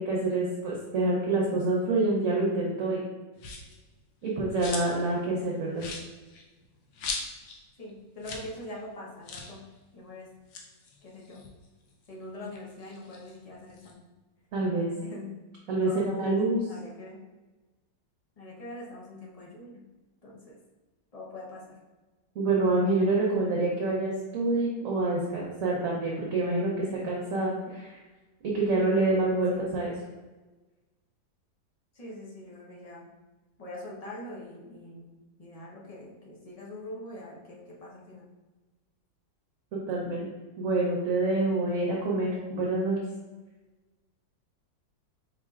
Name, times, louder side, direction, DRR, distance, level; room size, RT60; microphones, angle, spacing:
voice 1, 0.0-3.0 4.2-5.9 14.5-14.9 15.7-16.7 22.3-28.0 28.4-29.9 39.7-40.3 40.6-43.0, right 2 dB, 60° right, -3 dB, 1.0 m, -27 dB
sound 1, 3.4-3.8 4.2-5.1 5.4-5.5 5.8-7.6 7.9-8.0 8.2-8.5 8.8-8.9 9.2-9.6 10.3-12.1 12.5-13.9, left 4 dB, 75° left, 1.3 m, -39 dB
voice 2, 7.8-9.6 9.9-10.3 11.0-11.4 12.1-14.0 15.0-15.3 15.8-16.4 16.7-17.2 18.4-19.8 20.2-20.6 21.1-21.8 29.5-29.7 31.9-33.1 33.6-35.1 35.4-38.3, left 1 dB, 50° left, -4 dB, 0.4 m, -43 dB
4.8 x 4.3 x 2.4 m, 1.2 s
omnidirectional pair, 1.9 m